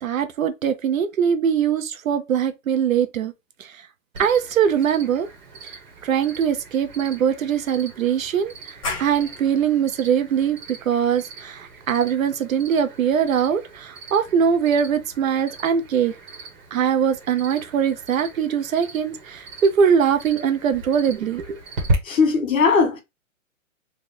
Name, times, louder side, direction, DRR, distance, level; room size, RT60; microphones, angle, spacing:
voice 1, 0.0-3.3 3.6-3.8 4.2-5.3 5.7-16.1 16.7-21.6, right 7 dB, 75° right, 0.9 m, -22 dB
Cricket, 4.1-21.9, right 2 dB, 35° right, 1.2 m, -37 dB
sound 1, 8.8-14.2, left 3 dB, 25° left, 1.0 m, -38 dB
voice 2, 22.0-23.0, left 5 dB, 70° left, 1.6 m, -18 dB
3.6 x 2.4 x 4.2 m
hypercardioid pair, 175°, 40 cm